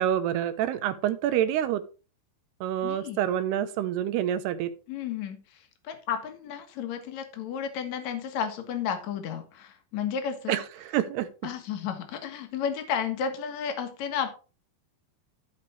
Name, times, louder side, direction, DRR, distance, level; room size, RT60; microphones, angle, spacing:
voice 1, 0.0-1.8 2.6-4.7 10.5-11.3, right 11 dB, 80° right, 10 dB, 2.5 m, -27 dB
voice 2, 2.8-3.2 4.9-10.6 11.4-14.3, left 7 dB, 55° left, 6 dB, 2.1 m, -32 dB
14.0 x 5.1 x 4.5 m, 0.34 s
omnidirectional pair, 5.2 m